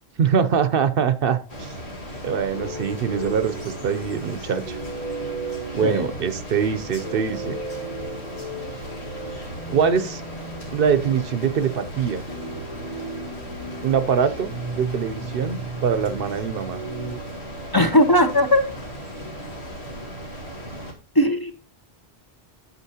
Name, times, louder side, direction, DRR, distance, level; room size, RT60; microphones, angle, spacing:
voice 1, 0.2-1.7 2.2-4.8 5.7-7.6 9.7-10.2 10.7-12.2 13.8-16.8, right 7 dB, 65° right, 12 dB, 0.8 m, -23 dB
sound 1, 1.5-20.9, equal, 85° left, 2.0 m, -37 dB
sound 2, 2.5-17.2, right 2 dB, 65° left, 2.2 m, -36 dB
voice 2, 17.7-18.6 21.1-21.5, left 1 dB, 25° left, 6 dB, 0.7 m, -18 dB
8.4 x 8.2 x 2.8 m, 0.36 s
omnidirectional pair, 1.1 m